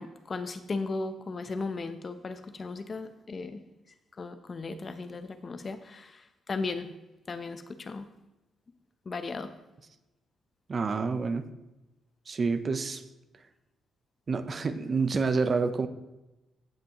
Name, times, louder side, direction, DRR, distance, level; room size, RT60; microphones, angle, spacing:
voice 1, 0.0-3.6 4.2-6.9 7.3-8.1 9.1-9.5, left 3 dB, 35° left, 9 dB, 0.7 m, -36 dB
voice 2, 10.7-11.5 12.3-13.0 14.3-15.9, right 4 dB, 40° right, 9 dB, 0.7 m, -28 dB
15.5 x 6.1 x 3.0 m, 0.99 s
cardioid pair, 90°, 0 cm